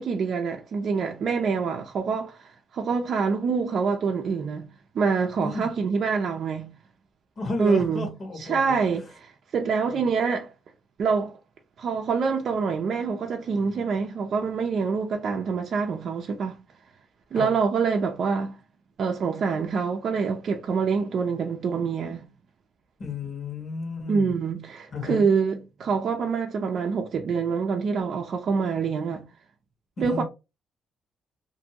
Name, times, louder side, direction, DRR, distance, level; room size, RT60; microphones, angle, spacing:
voice 1, 0.0-4.7 4.9-6.7 7.6-10.5 11.0-11.4 11.8-16.6 17.3-18.6 19.0-22.3 24.1-29.3 30.0-30.2, right 5 dB, 60° right, 0.4 m, -26 dB
voice 2, 7.4-8.8 9.9-10.0 17.3-17.5 23.0-24.3 24.9-25.2 30.0-30.2, left 3 dB, 45° left, 1.2 m, -32 dB
2.6 x 2.5 x 2.8 m
cardioid pair, 90°, 0 cm